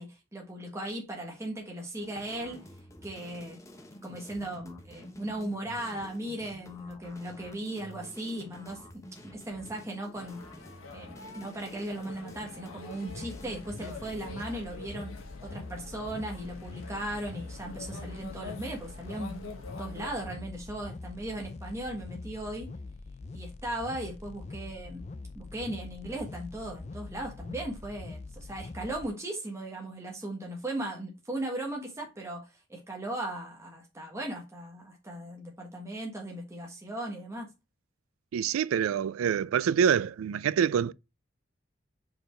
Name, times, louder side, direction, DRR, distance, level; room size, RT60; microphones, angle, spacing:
voice 1, 0.0-2.7 3.0-3.6 4.0-8.9 9.2-10.4 10.9-15.1 15.4-19.4 19.8-22.7 23.3-25.0 25.3-37.5, right 1 dB, 15° right, 1.4 m, -37 dB
sound 1, 2.0-14.2, left 1 dB, 15° left, 0.8 m, -49 dB
sound 2, 10.1-20.1, left 3 dB, 90° left, 1.6 m, -46 dB
sound 3, 13.1-29.1, left 3 dB, 35° left, 0.4 m, -44 dB
voice 2, 38.3-40.9, right 8 dB, 85° right, 0.3 m, -26 dB
5.2 x 4.5 x 4.4 m
head